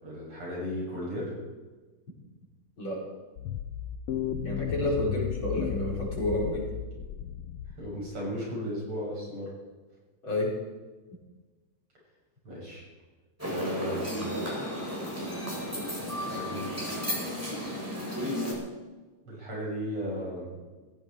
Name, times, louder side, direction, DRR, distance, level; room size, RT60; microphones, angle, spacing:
voice 1, 0.0-1.3 7.8-9.5 12.5-12.9 13.4-14.1 16.3-16.7 19.2-20.6, equal, 80° right, -4 dB, 7.6 m, -35 dB
sound 1, 3.4-8.0, left 9 dB, 85° left, 1.7 m, -34 dB
voice 2, 4.4-6.7 10.2-10.6, left 1 dB, 60° left, -4 dB, 5.6 m, -30 dB
sound 2, 13.4-18.5, equal, 5° right, 4.4 m, -33 dB
17.0 x 15.5 x 4.7 m, 1.3 s
omnidirectional pair, 2.4 m